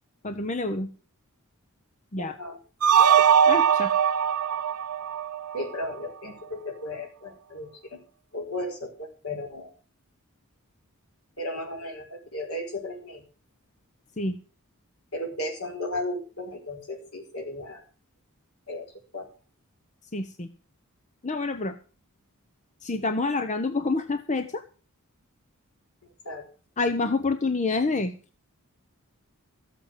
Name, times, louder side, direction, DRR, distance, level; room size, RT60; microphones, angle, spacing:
voice 1, 0.2-0.9 2.1-2.4 3.0-3.9 14.2-14.4 20.1-20.5 21.2-21.7 22.8-24.6 26.8-28.1, left 3 dB, 35° left, 8 dB, 0.9 m, -27 dB
voice 2, 2.2-2.6 5.5-8.0 8.3-9.7 11.4-13.2 15.1-17.8 18.7-18.9 19.1-19.3 26.2-26.4, left 1 dB, 75° left, 2 dB, 4.9 m, -35 dB
sound 1, 2.8-5.9, right 8 dB, 85° right, 0.5 m, -21 dB
14.0 x 8.3 x 6.7 m, 0.36 s
head